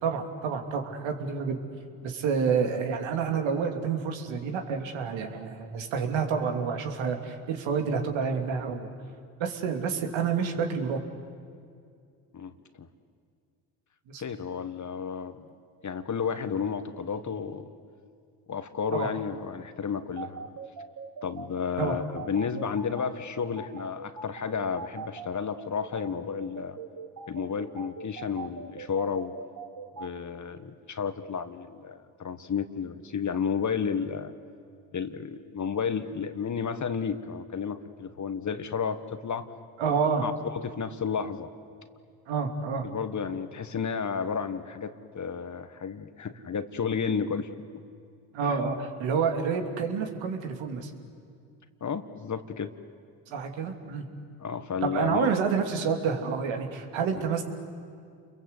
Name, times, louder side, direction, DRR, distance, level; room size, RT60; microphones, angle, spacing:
voice 1, 0.0-1.6 2.0-8.9 9.4-11.0 14.1-14.2 18.9-19.1 21.8-22.0 39.8-40.3 42.3-42.9 48.3-50.9 53.3-54.1 54.8-57.4, right 6 dB, 70° right, 4 dB, 2.8 m, -28 dB
voice 2, 14.2-15.5 15.8-17.7 18.5-20.5 21.2-26.8 27.3-29.3 30.0-34.3 34.9-39.5 39.8-39.9 40.2-41.5 42.9-47.5 48.4-48.6 51.8-52.7 54.4-55.3, left 6 dB, 40° left, 11 dB, 1.6 m, -32 dB
sound 1, 20.2-30.1, right 5 dB, 45° right, 2.7 m, -41 dB
30.0 x 22.5 x 8.2 m, 2.3 s
hypercardioid pair, 60°, 47 cm